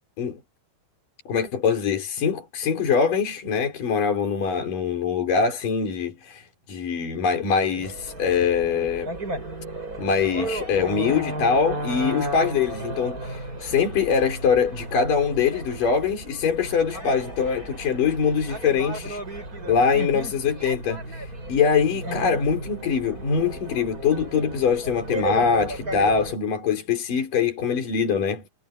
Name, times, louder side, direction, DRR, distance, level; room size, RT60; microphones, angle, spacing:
voice 1, 1.3-9.1 10.0-19.2 19.7-28.4, left 6 dB, 75° left, 6.2 m, -23 dB
sound 1, 7.8-26.3, right 1 dB, 25° right, 6.9 m, -34 dB
omnidirectional pair, 3.8 m